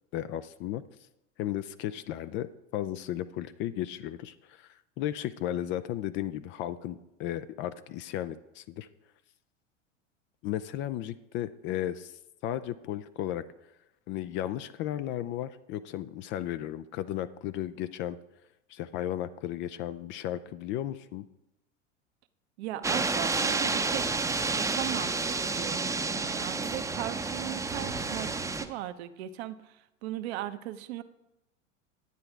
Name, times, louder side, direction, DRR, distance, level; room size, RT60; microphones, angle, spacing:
voice 1, 0.1-0.8 1.4-8.9 10.4-13.4 14.1-18.2 18.7-21.2, left 12 dB, 30° left, 13 dB, 0.4 m, -35 dB
voice 2, 22.6-24.2 24.5-31.0, right 13 dB, 55° right, 10 dB, 0.8 m, -38 dB
sound 1, 22.8-28.7, right 3 dB, 10° right, 0.7 m, -30 dB
10.5 x 8.7 x 4.6 m, 0.90 s
figure-of-eight pair, 85°, 38 cm